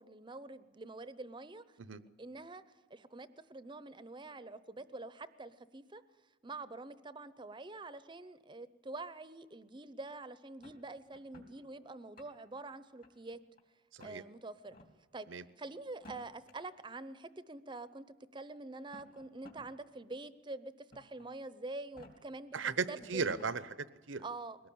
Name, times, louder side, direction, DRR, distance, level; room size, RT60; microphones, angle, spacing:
voice 1, 0.0-1.6 2.2-2.6 2.9-6.0 6.4-13.4 14.0-14.8 15.1-15.3 15.6-18.0 18.3-22.6 22.9-23.3 24.2-24.6, right 2 dB, 25° right, 14 dB, 0.7 m, -46 dB
sound 1, 10.6-11.5 12.0-12.6 13.0-13.6 14.0-14.2 14.7-14.9 15.9-16.5 17.6-17.7 18.7-19.7 20.1-20.2 20.9-21.3 21.8-22.1 22.7-22.8 23.0-23.5, left 1 dB, 45° left, 2.9 m, -56 dB
voice 2, 22.5-24.2, right 5 dB, 75° right, 15 dB, 0.9 m, -36 dB
22.0 x 18.0 x 8.6 m, 1.3 s
head